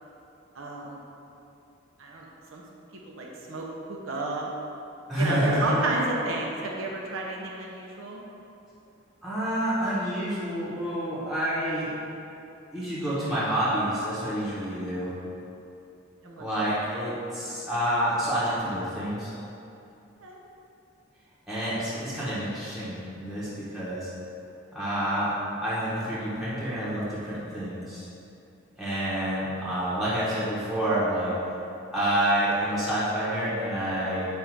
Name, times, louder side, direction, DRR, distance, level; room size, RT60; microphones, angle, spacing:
voice 1, 0.5-1.0 2.0-2.6 3.0-4.5 5.2-8.2 16.2-16.7 20.2-20.4, right 2 dB, 80° right, -2 dB, 0.9 m, -32 dB
voice 2, 5.1-5.8 9.2-11.9 12.7-15.1 16.4-19.3 21.5-24.1 24.7-28.0 28.8-31.3 31.9-34.3, right 1 dB, ahead, -11 dB, 1.2 m, -28 dB
7.8 x 2.7 x 4.7 m, 2.8 s
head